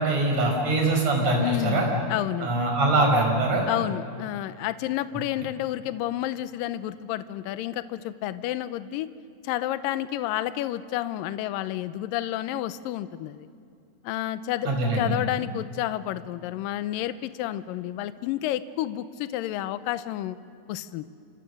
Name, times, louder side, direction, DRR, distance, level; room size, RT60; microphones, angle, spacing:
voice 1, 0.0-1.9 2.4-3.6 14.7-15.1, right 2 dB, 40° right, 1 dB, 5.8 m, -23 dB
voice 2, 1.4-2.5 3.7-9.1 9.4-13.5 14.0-20.4 20.7-21.1, left 13 dB, 80° left, 13 dB, 2.1 m, -30 dB
29.5 x 27.0 x 6.7 m, 2.5 s
omnidirectional pair, 4.9 m